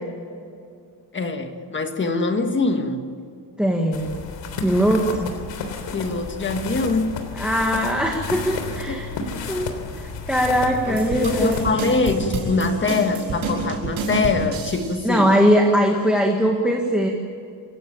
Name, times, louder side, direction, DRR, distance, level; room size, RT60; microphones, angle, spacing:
voice 1, 1.1-3.2 5.9-7.3 8.9-9.0 9.3-9.5 10.9-15.3, left 3 dB, 25° left, 6 dB, 1.7 m, -24 dB
voice 2, 3.6-4.1 4.6-5.3 7.3-9.1 9.5-11.6 15.0-17.1, equal, ahead, 1 dB, 1.8 m, -20 dB
sound 1, 3.9-11.7, left 5 dB, 80° left, 3.5 m, -32 dB
sound 2, 10.9-15.1, right 3 dB, 50° right, 5.8 m, -28 dB
28.0 x 17.0 x 8.9 m, 2.4 s
cardioid pair, 180°, 43 cm